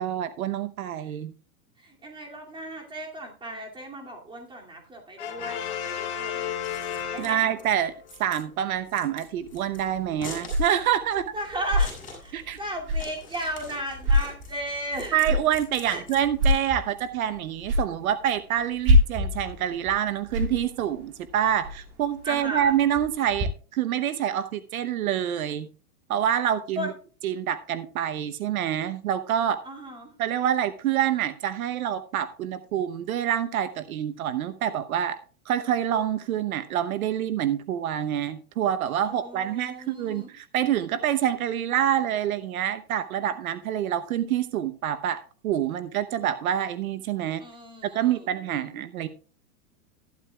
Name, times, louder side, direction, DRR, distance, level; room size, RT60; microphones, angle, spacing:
voice 1, 0.0-1.3 7.0-7.9 8.2-11.2 12.3-12.6 15.1-25.7 26.1-26.9 27.2-29.6 30.2-35.2 35.5-47.4 47.8-49.1, right 10 dB, 75° right, 11 dB, 1.0 m, -27 dB
voice 2, 1.8-6.5 7.1-7.4 11.3-15.2 15.8-16.0 22.2-22.7 26.8-26.9 29.6-30.1 39.0-40.3 47.4-48.7, equal, 10° right, 0 dB, 2.5 m, -36 dB
Brass instrument, 5.2-7.8, left 9 dB, 50° left, 3.0 m, -33 dB
Scissors, 6.5-17.0, left 3 dB, 20° left, 6.5 m, -45 dB
sound 1, 9.4-23.4, left 1 dB, 35° right, 3.8 m, -29 dB
14.0 x 11.5 x 2.3 m, 0.40 s
hypercardioid pair, 145°, 43 cm